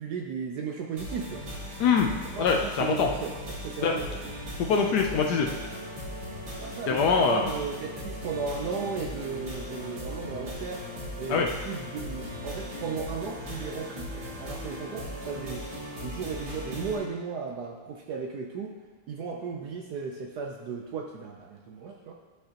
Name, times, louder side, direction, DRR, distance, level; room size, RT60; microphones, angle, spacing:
voice 1, 0.0-1.4 2.2-4.3 6.6-10.8 11.2-18.7 19.1-22.1, right 5 dB, 75° right, 1 dB, 0.9 m, -35 dB
sound 1, 1.0-17.0, left 1 dB, 50° right, 2.3 m, -38 dB
voice 2, 1.8-2.1 2.4-3.1 3.8-3.9 4.6-5.5 6.9-7.5 11.3-11.5, left 5 dB, 75° left, 2 dB, 0.9 m, -23 dB
11.5 x 5.6 x 2.9 m, 1.3 s
omnidirectional pair, 2.4 m